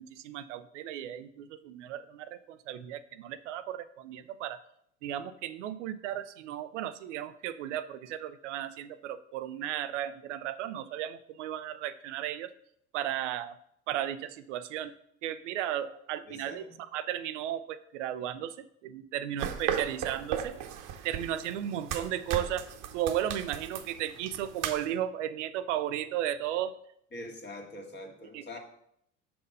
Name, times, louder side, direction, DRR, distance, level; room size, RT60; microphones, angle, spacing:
voice 1, 0.0-4.6 5.0-12.5 12.9-13.6 13.9-14.9 15.2-16.6 16.9-18.5 18.8-20.5 21.0-22.7 22.9-26.7 28.3-28.6, right 11 dB, 90° right, 13 dB, 0.5 m, -35 dB
voice 2, 16.2-16.7 27.1-28.6, left 1 dB, 30° left, 2 dB, 1.7 m, -44 dB
sound 1, 19.4-24.9, right 9 dB, 60° right, 0.9 m, -36 dB
6.6 x 4.3 x 5.3 m, 0.71 s
hypercardioid pair, 80°, 35 cm